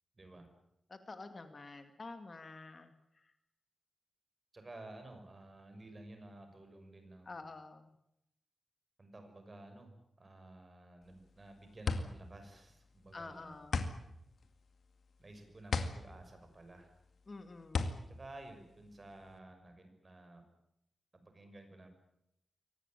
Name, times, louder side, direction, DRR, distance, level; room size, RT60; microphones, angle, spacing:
voice 1, 0.2-0.5 4.5-7.4 9.0-13.6 15.2-17.0 18.1-20.4 21.1-21.9, right 2 dB, 30° right, 6 dB, 6.0 m, -53 dB
voice 2, 0.9-3.3 7.3-7.9 13.1-13.8 17.3-17.9, left 3 dB, 35° left, 8 dB, 2.1 m, -49 dB
sound 1, 11.0-19.4, left 4 dB, 65° left, 2.1 m, -38 dB
24.0 x 18.5 x 9.1 m, 0.80 s
wide cardioid pair, 130°, 0 cm